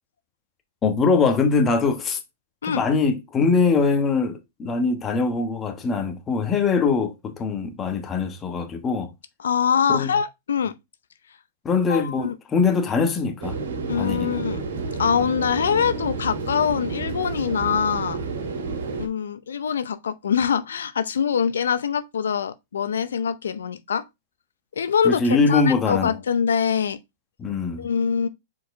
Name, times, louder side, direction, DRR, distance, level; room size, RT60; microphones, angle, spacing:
voice 1, 0.8-2.2 2.6-9.1 9.9-10.1 11.6-13.6 13.9-14.4 25.0-26.1 27.4-27.9, left 4 dB, 20° left, 1.2 m, -22 dB
voice 2, 9.4-10.7 11.9-12.3 13.9-14.6 15.0-18.2 19.0-24.0 24.7-27.0 27.8-28.3, left 7 dB, 90° left, 0.6 m, -24 dB
sound 1, 13.4-19.1, right 4 dB, 80° right, 2.1 m, -30 dB
4.7 x 4.7 x 4.5 m
hypercardioid pair, 145°, 0 cm